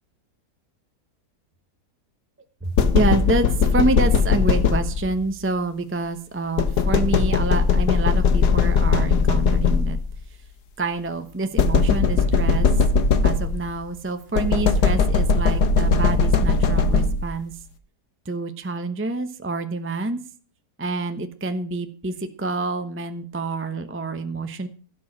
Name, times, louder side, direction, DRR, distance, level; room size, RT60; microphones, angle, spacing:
voice 1, 2.6-10.0 10.8-12.8 13.2-17.5 18.2-20.2 20.8-24.7, right 3 dB, 10° right, 8 dB, 0.8 m, -27 dB
sound 1, 2.8-5.2 6.6-10.1 11.6-13.8 14.3-17.4, left 5 dB, 75° left, 1.7 m, -19 dB
16.5 x 7.0 x 6.1 m, 0.43 s
omnidirectional pair, 1.7 m